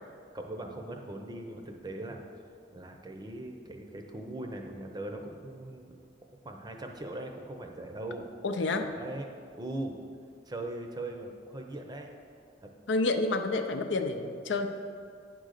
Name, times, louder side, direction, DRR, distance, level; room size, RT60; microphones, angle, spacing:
voice 1, 0.3-2.2 2.7-6.0 6.4-8.3 9.0-9.3 9.6-10.0 10.5-12.1 12.6-12.7, right 1 dB, 20° right, 3 dB, 0.6 m, -40 dB
voice 2, 8.4-8.9 12.9-14.7, left 2 dB, 80° left, 7 dB, 0.6 m, -29 dB
9.5 x 3.9 x 6.5 m, 2.2 s
head